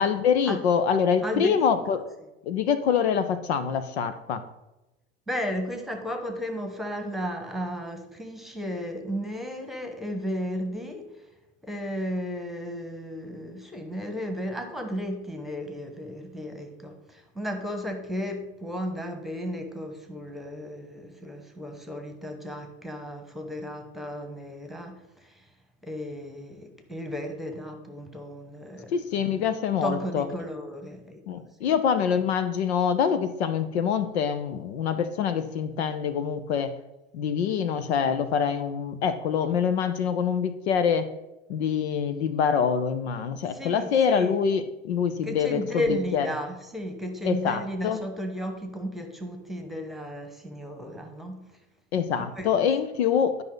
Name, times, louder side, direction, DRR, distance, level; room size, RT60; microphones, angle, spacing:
voice 1, 0.0-2.0 2.5-4.4 28.9-30.3 31.3-36.7 37.1-41.1 41.5-46.3 47.2-48.0 51.9-53.4, left 7 dB, 65° left, 11 dB, 0.8 m, -25 dB
voice 2, 1.2-2.0 5.3-11.1 11.6-25.5 25.8-29.5 29.8-31.7 43.5-44.4 45.2-51.5 52.2-52.5, equal, ahead, 5 dB, 1.4 m, -34 dB
11.5 x 5.5 x 4.0 m, 0.98 s
hypercardioid pair, 85°, 35 cm